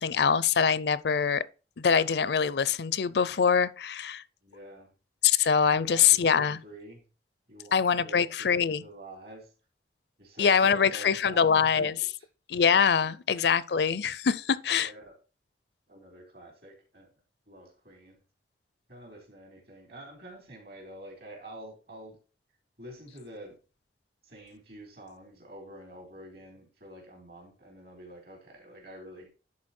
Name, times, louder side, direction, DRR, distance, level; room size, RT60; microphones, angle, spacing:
voice 1, 0.0-1.4 1.8-4.2 5.2-6.6 7.7-8.8 10.4-11.9 12.5-14.9, left 6 dB, 65° left, 0.5 m, -24 dB
voice 2, 4.4-4.9 5.7-7.0 7.5-9.5 10.2-11.4 11.8-12.3 13.0-13.2 14.7-15.2 15.9-17.1 17.5-18.2 18.9-22.2 22.8-23.6 24.2-29.3, right 1 dB, 60° right, 3.9 m, -48 dB
11.0 x 4.3 x 4.3 m
head